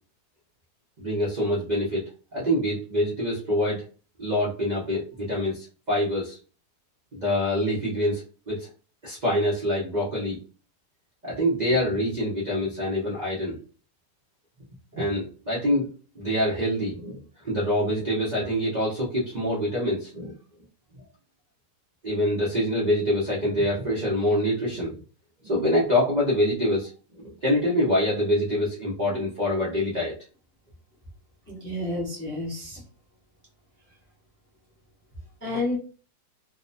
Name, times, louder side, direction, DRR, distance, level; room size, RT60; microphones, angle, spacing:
voice 1, 1.0-3.8 4.2-6.4 7.1-8.7 9.0-10.4 11.2-13.6 14.9-15.9 16.2-17.2 17.4-20.3 22.0-25.0 25.4-26.9 27.2-30.1, left 1 dB, 65° right, -5 dB, 0.4 m, -25 dB
voice 2, 31.5-32.8 35.4-35.8, left 2 dB, 15° left, -5 dB, 0.4 m, -30 dB
2.8 x 2.1 x 2.6 m, 0.38 s
omnidirectional pair, 1.8 m